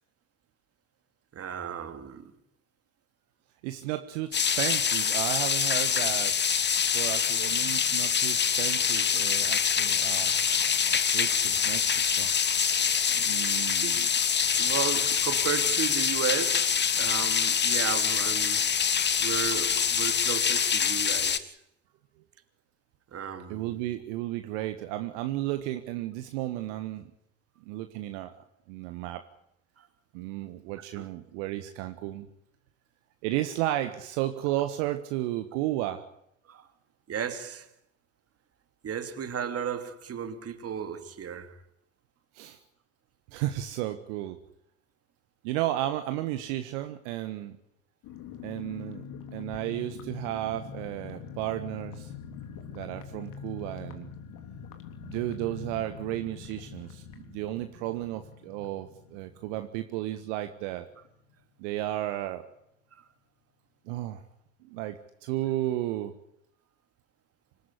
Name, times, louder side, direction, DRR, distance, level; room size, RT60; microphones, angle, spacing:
voice 1, 1.3-2.3 13.8-14.0 14.6-18.7 19.2-21.6 23.1-23.8 29.8-29.9 30.8-31.1 36.5-36.7 37.1-37.7 38.8-41.6, right 8 dB, 35° right, 2.8 m, -34 dB
voice 2, 3.6-6.4 6.9-10.4 11.0-12.3 13.1-14.1 23.5-27.1 27.6-28.3 28.7-29.2 30.1-32.3 33.2-36.1 42.3-42.6 43.3-44.4 45.4-47.6 48.4-49.0 49.3-52.1 52.7-54.1 55.0-60.9 61.6-62.5 63.9-64.2 64.6-66.1, right 14 dB, 65° right, 1.6 m, -33 dB
sound 1, 4.3-21.4, left 7 dB, 25° left, 1.4 m, -25 dB
sound 2, 48.0-60.4 60.7-60.8 61.0-61.3, left 6 dB, 55° left, 3.5 m, -44 dB
25.5 x 14.0 x 10.0 m
figure-of-eight pair, 60°, 39 cm